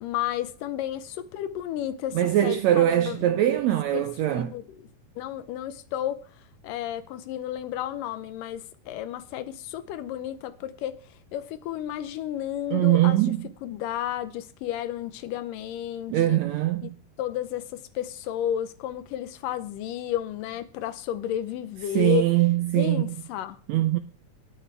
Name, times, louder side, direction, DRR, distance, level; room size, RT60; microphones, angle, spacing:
voice 1, 0.0-4.7 5.2-6.2 6.6-10.9 11.3-13.2 13.6-16.4 16.8-16.9 17.2-22.3 22.7-23.6, left 11 dB, 85° left, 2.5 m, -32 dB
voice 2, 2.2-4.5 12.7-13.4 16.1-16.9 22.0-23.0 23.7-24.0, right 14 dB, 80° right, 1.6 m, -22 dB
20.0 x 8.5 x 3.4 m
omnidirectional pair, 3.8 m